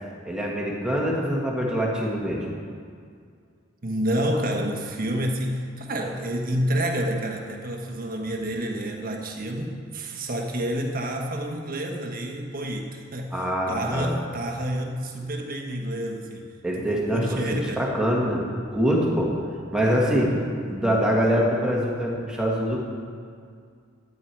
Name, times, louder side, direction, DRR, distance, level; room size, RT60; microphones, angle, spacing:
voice 1, 0.3-2.5 13.3-14.1 16.6-18.4 18.7-19.3 19.7-20.3 20.7-22.8, equal, 5° right, -4 dB, 2.0 m, -24 dB
voice 2, 3.8-16.5 16.8-17.8, right 1 dB, 45° right, 2 dB, 1.3 m, -29 dB
12.5 x 9.4 x 4.7 m, 2.2 s
head